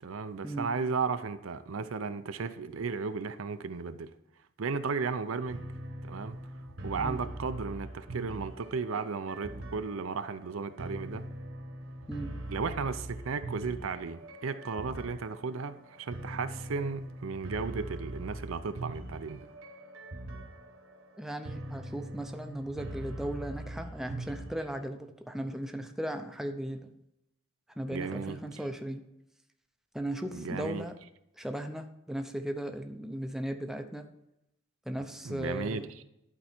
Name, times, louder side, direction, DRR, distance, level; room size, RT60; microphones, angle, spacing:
voice 1, 0.0-4.1 4.6-5.6 6.0-6.4 6.8-11.2 12.5-19.5 27.9-28.4 30.3-30.8 35.2-35.8, right 4 dB, 85° right, 0.6 m, -34 dB
sound 1, 5.5-24.8, right 1 dB, 70° right, 1.2 m, -42 dB
voice 2, 21.2-26.9 27.8-29.0 29.9-30.9 31.4-34.1 34.9-35.9, right 1 dB, ahead, 0.5 m, -37 dB
11.5 x 4.6 x 4.3 m
head